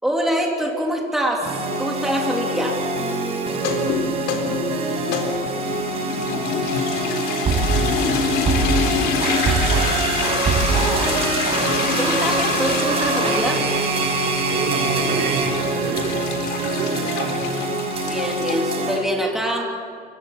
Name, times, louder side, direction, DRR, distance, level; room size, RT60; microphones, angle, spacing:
voice 1, 0.0-1.5 1.8-2.8 12.0-13.6 18.0-19.6, equal, ahead, -1 dB, 3.3 m, -24 dB
sound 1, 1.4-19.0, right 3 dB, 35° right, 5.6 m, -23 dB
sound 2, 3.5-18.6, left 6 dB, 90° left, 4.0 m, -27 dB
voice 2, 14.5-16.3 16.6-17.6, right 5 dB, 90° right, 1 dB, 4.5 m, -28 dB
28.5 x 24.0 x 7.3 m, 2.2 s
cardioid pair, 180°, 17 cm